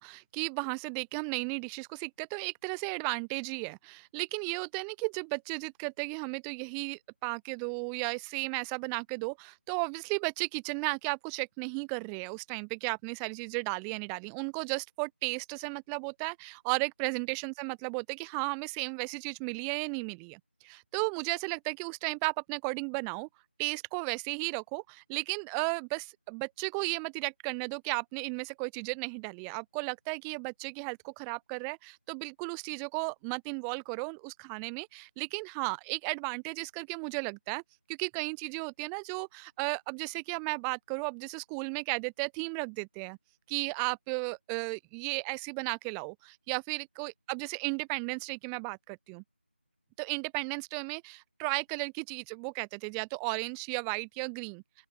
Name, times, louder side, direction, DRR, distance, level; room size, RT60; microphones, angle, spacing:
voice 1, 0.0-23.3 23.6-37.6 37.9-43.2 43.5-49.2 50.0-54.6, right 40 dB or more, 10° right, 2.8 m, -34 dB
open air
figure-of-eight pair, 165°, 6 cm